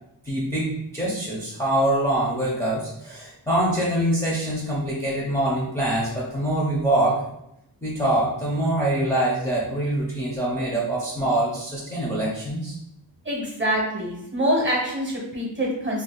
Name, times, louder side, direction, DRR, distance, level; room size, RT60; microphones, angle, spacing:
voice 1, 0.3-7.2 7.8-12.7, right 1 dB, 5° left, -6 dB, 0.6 m, -24 dB
voice 2, 13.2-16.0, equal, 25° right, -3 dB, 0.9 m, -25 dB
2.7 x 2.3 x 3.8 m, 0.81 s
wide cardioid pair, 145°, 44 cm